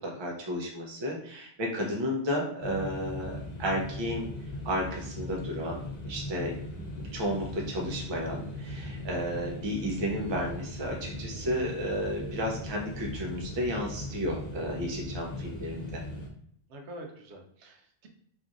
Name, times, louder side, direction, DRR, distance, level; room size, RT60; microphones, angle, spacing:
voice 1, 0.0-4.3 4.6-6.5 7.1-16.0, equal, 35° right, -1 dB, 0.4 m, -32 dB
sound 1, 2.6-16.3, left 1 dB, 55° left, 0.5 m, -39 dB
voice 2, 16.7-18.1, right 1 dB, 80° right, 2 dB, 0.9 m, -46 dB
2.9 x 2.5 x 2.4 m, 0.67 s
omnidirectional pair, 1.1 m